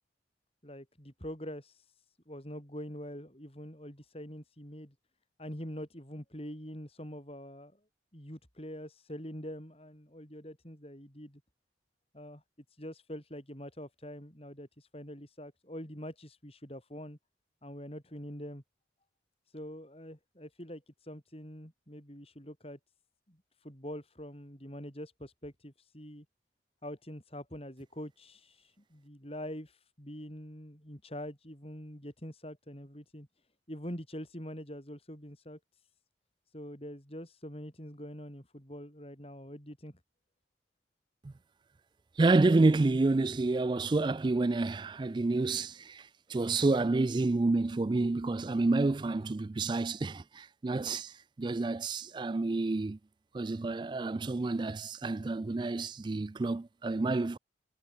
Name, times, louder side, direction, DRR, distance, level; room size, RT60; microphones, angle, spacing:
voice 1, 0.6-4.9 5.4-7.8 8.1-11.4 12.1-12.4 12.7-17.2 17.6-18.6 19.5-22.8 23.3-26.2 26.8-33.3 33.7-35.6 36.5-40.0, equal, 30° left, 6.4 m, -44 dB
voice 2, 42.2-46.0 46.3-51.1 51.4-53.0 53.3-57.4, right 3 dB, 25° right, 0.3 m, -29 dB
head